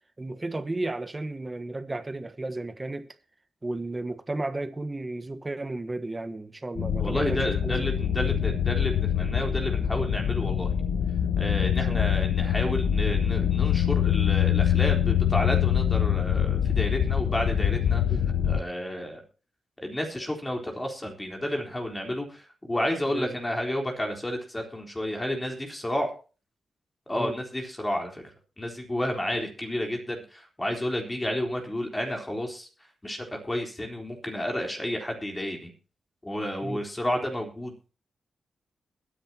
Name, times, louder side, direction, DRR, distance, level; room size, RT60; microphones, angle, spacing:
voice 1, 0.2-3.1 3.6-7.9 8.1-8.3 11.9-12.1 18.1-18.2 23.1-23.4 27.2-27.3 29.4-29.5 36.6-36.8, right 2 dB, 25° right, 1.4 m, -33 dB
sound 1, 6.8-18.6, left 9 dB, 80° left, 0.9 m, -24 dB
voice 2, 7.0-10.8 11.4-18.0 18.4-19.2 19.8-26.1 27.1-28.2 28.6-32.7 33.0-35.7 36.2-37.9, left 1 dB, 15° left, 3.9 m, -31 dB
21.5 x 10.0 x 2.9 m
cardioid pair, 85°, 0 cm